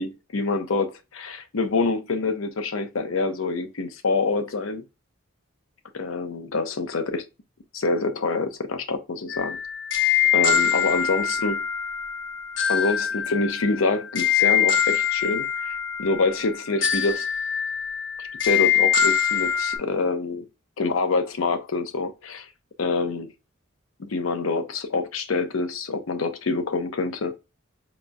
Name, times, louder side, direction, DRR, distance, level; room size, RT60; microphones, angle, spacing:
voice 1, 0.0-4.8 5.9-7.2 7.7-9.6 10.3-11.6 12.7-17.3 18.2-20.5 20.8-22.5 22.8-23.3 24.0-27.3, left 3 dB, 85° left, 0.7 m, -26 dB
sound 1, 9.3-19.8, left 8 dB, 60° left, 0.9 m, -24 dB
5.0 x 3.0 x 2.2 m
head